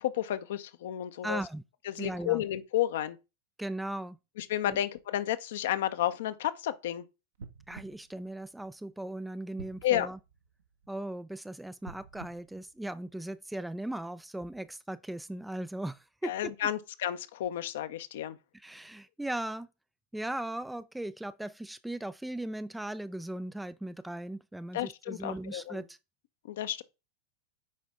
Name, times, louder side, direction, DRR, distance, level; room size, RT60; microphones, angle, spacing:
voice 1, 0.0-1.4 1.9-3.2 4.4-7.0 9.8-10.1 16.2-18.4 24.7-25.8 26.4-26.8, left 12 dB, 55° left, 0.7 m, -31 dB
voice 2, 1.2-1.6 2.0-2.4 3.6-4.2 4.7-4.8 7.7-10.2 10.9-16.5 18.5-19.7 20.1-26.0, right 1 dB, 5° right, 0.4 m, -38 dB
sound 1, 7.3-9.0 9.5-11.1 11.7-13.4 14.0-14.1, right 4 dB, 65° right, 1.0 m, -50 dB
8.4 x 5.1 x 3.6 m
figure-of-eight pair, 90°, 0 cm